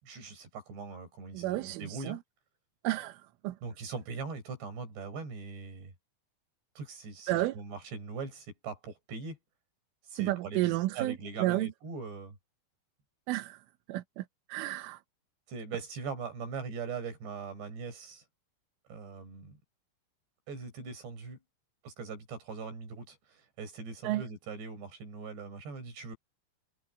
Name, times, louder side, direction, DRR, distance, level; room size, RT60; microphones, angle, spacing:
voice 1, 0.0-2.2 3.6-5.9 6.8-9.4 10.1-12.4 15.5-18.2 18.9-19.6 20.5-21.4 21.8-26.2, right 4 dB, 55° right, 8.2 m, -41 dB
voice 2, 1.3-2.2 2.8-3.6 7.3-7.6 10.1-11.7 13.3-15.0 24.0-24.2, right 17 dB, 80° right, 3.4 m, -32 dB
omnidirectional pair, 6.0 m